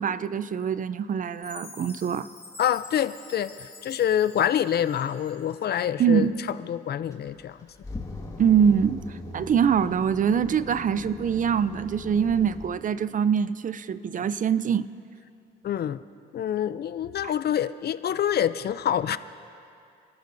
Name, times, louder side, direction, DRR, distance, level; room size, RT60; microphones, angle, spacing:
voice 1, 0.0-2.3 6.0-6.4 8.4-14.9 17.2-17.3, right 7 dB, 40° right, 15 dB, 0.5 m, -24 dB
Chime, 1.4-5.7, left 4 dB, 35° left, 3.7 m, -48 dB
voice 2, 2.6-6.3 6.7-7.6 15.6-16.0 16.3-19.2, left 10 dB, 55° left, 14 dB, 0.5 m, -26 dB
sound 1, 7.1-12.7, left 2 dB, 15° left, 1.8 m, -40 dB
30.0 x 13.5 x 2.6 m, 2.5 s
cardioid pair, 90°, 20 cm